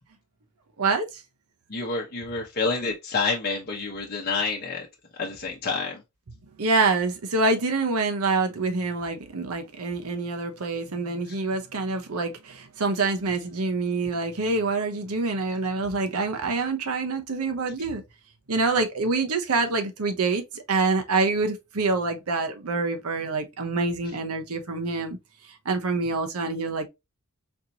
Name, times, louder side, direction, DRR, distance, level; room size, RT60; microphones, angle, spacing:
voice 1, 0.8-1.2 6.6-18.0 18.5-25.2 25.6-26.9, right 3 dB, 75° right, 0.8 m, -26 dB
voice 2, 1.7-4.9 5.2-6.0, left 4 dB, 45° left, 0.9 m, -28 dB
4.3 x 2.9 x 2.6 m
head